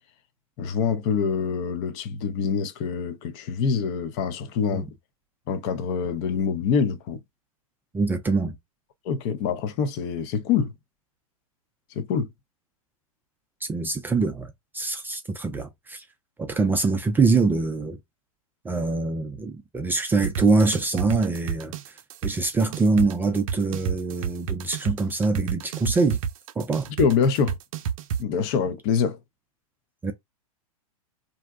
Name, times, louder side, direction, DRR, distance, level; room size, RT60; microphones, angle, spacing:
voice 1, 0.6-4.9 5.5-7.2 9.0-10.7 11.9-12.3 27.0-27.5 28.2-29.2, left 6 dB, 45° left, 0.6 m, -25 dB
voice 2, 7.9-8.6 13.6-16.0 16.4-18.0 18.6-21.9 22.2-26.2 26.6-26.9 30.0-30.1, right 3 dB, 10° right, 0.3 m, -24 dB
sound 1, 20.2-28.2, right 7 dB, 65° right, 0.5 m, -29 dB
2.6 x 2.1 x 3.6 m
hypercardioid pair, 115°, 19 cm